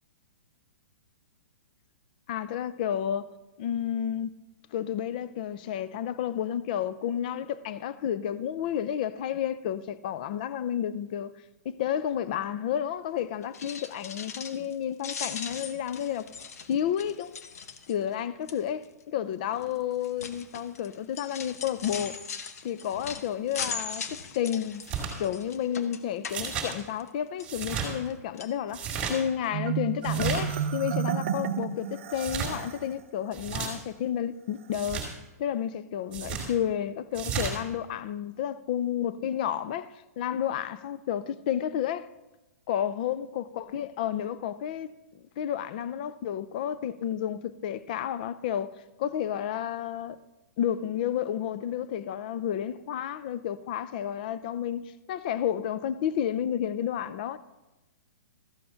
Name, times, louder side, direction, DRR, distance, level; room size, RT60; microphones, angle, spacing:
voice 1, 2.3-3.3 3.6-4.3 4.7-11.3 11.6-16.3 16.7-17.4 17.9-22.2 22.6-24.8 25.2-35.1 35.4-42.1 42.7-44.9 45.4-48.7 49.0-50.2 50.6-57.4, left 9 dB, 30° left, 0.4 m, -31 dB
sound 1, 13.4-14.7 15.0-18.1 18.5-18.8 19.6-27.1 27.4-28.1 28.4-28.6 29.1-29.2 29.4-29.5, left 6 dB, 65° left, 1.0 m, -39 dB
sound 2, 24.8-25.1 26.3-26.7 27.4-27.9 28.7-29.2 30.0-30.6 32.1-32.5 33.3-33.7 34.7-35.1 36.1-36.5 37.1-37.5, right 7 dB, 15° right, 2.2 m, -33 dB
Marimba xylophone, 29.5-32.9, right 10 dB, 45° right, 0.7 m, -31 dB
13.5 x 7.8 x 5.7 m
hypercardioid pair, 170°, 9 cm